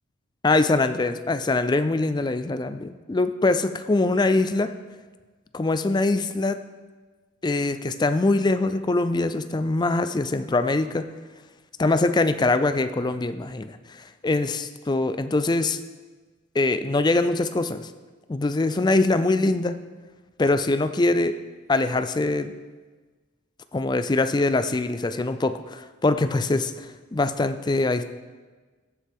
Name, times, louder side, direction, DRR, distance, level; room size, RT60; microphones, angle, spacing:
voice 1, 0.4-4.7 5.5-6.6 7.4-11.1 11.8-15.8 16.5-17.9 18.3-19.8 20.4-21.4 21.7-22.5 23.7-28.0, left 2 dB, 20° left, 11 dB, 0.4 m, -23 dB
15.0 x 7.4 x 3.6 m, 1.4 s
head